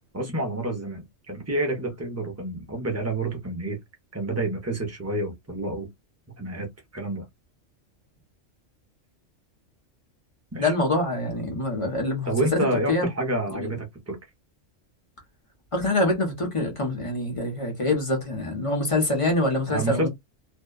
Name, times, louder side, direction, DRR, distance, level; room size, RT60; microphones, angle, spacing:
voice 1, 0.0-3.8 4.1-5.9 6.4-6.7 6.9-7.2 10.5-10.7 12.3-14.2 19.7-20.1, right 1 dB, 15° right, 0.5 m, -28 dB
voice 2, 10.6-13.1 13.5-13.7 15.7-20.1, left 2 dB, 30° left, 0.8 m, -25 dB
2.6 x 2.2 x 2.2 m
omnidirectional pair, 1.3 m